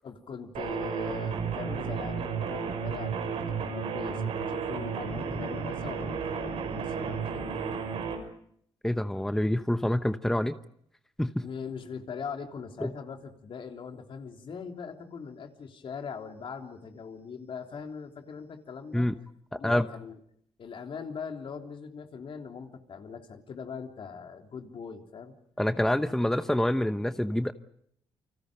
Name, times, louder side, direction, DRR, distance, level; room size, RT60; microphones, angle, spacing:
voice 1, 0.0-7.4 11.4-19.1 19.5-20.2 20.6-25.4, left 6 dB, 60° left, 4 dB, 3.6 m, -41 dB
sound 1, 0.5-8.2, right 6 dB, 85° right, 6.0 m, -33 dB
voice 2, 8.8-10.6 11.2-11.5 12.8-12.9 18.9-19.1 19.6-19.9 25.6-27.5, left 1 dB, 5° left, 10 dB, 1.0 m, -26 dB
29.5 x 25.5 x 5.2 m, 0.67 s
cardioid pair, 90°, 10 cm